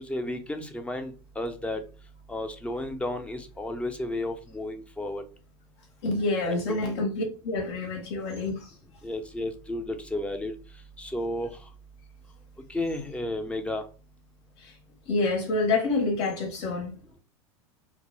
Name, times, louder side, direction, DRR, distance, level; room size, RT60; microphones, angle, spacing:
voice 1, 0.0-1.8 2.3-5.2 6.4-6.8 9.0-10.5 11.0-11.5 12.7-13.8, left 1 dB, 10° left, 6 dB, 0.4 m, -32 dB
voice 2, 6.0-8.7 14.6-14.7 15.1-17.0, left 3 dB, 65° left, 3 dB, 0.8 m, -27 dB
2.1 x 2.0 x 3.0 m, 0.36 s
hypercardioid pair, 85°, 15 cm